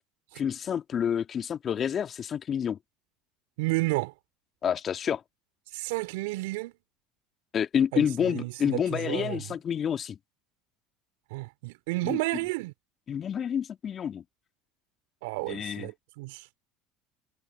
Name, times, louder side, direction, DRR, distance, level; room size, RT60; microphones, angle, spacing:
voice 1, 0.4-2.8 4.6-5.2 7.5-10.2 12.0-12.2 13.1-14.2 15.5-15.9, left 8 dB, 40° left, 1.9 m, -28 dB
voice 2, 3.6-4.1 5.7-6.7 7.9-9.5 11.3-12.7 15.2-16.5, right 23 dB, 70° right, 3.0 m, -32 dB
hypercardioid pair, 75°, 0 cm